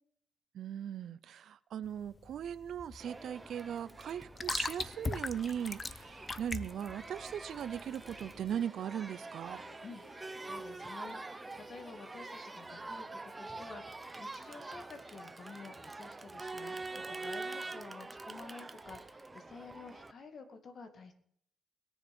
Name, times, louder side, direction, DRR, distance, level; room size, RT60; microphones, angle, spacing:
voice 1, 0.5-9.6, right 9 dB, 65° right, 0.5 m, -39 dB
sound 1, 1.8-8.6, left 3 dB, 25° left, 0.8 m, -40 dB
Crowd, 3.0-20.1, right 3 dB, 20° right, 0.8 m, -46 dB
sound 2, 5.6-13.0, left 6 dB, 85° left, 1.8 m, -64 dB
voice 2, 9.8-21.1, left 4 dB, 50° left, 2.2 m, -51 dB
20.5 x 7.1 x 5.3 m
cardioid pair, 90°, 0 cm